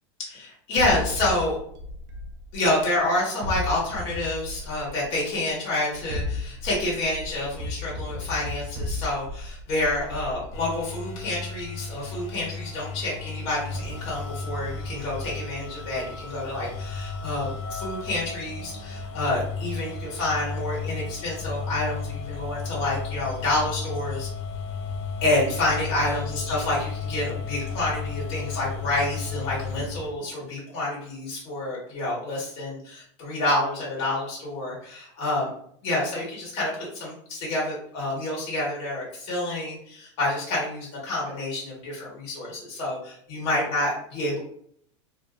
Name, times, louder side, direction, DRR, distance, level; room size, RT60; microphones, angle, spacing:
voice 1, 0.2-1.6 2.5-24.3 25.2-35.5 35.8-44.4, left 2 dB, 40° left, -5 dB, 1.2 m, -28 dB
sound 1, 0.8-2.9 3.4-5.2 5.9-11.0, left 2 dB, 85° right, 0.5 m, -34 dB
sound 2, 10.5-30.1, left 4 dB, 65° left, 0.5 m, -34 dB
2.6 x 2.3 x 2.2 m, 0.64 s
supercardioid pair, 160°, 16 cm